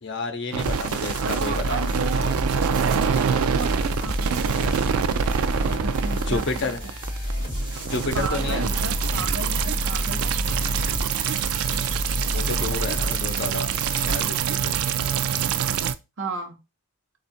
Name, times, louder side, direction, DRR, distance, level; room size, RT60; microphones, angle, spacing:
voice 1, 0.0-1.8 6.3-6.8 7.9-8.6 12.3-13.7 14.0-14.8, left 3 dB, 55° left, 5 dB, 0.7 m, -30 dB
sound 1, 0.5-15.9, right 8 dB, 85° right, 0.3 m, -26 dB
sound 2, 0.6-14.2, equal, 25° right, 2.4 m, -29 dB
voice 2, 1.2-6.9 8.1-10.2 16.2-16.6, right 3 dB, 55° right, 4 dB, 0.7 m, -34 dB
3.5 x 2.4 x 4.1 m, 0.26 s
head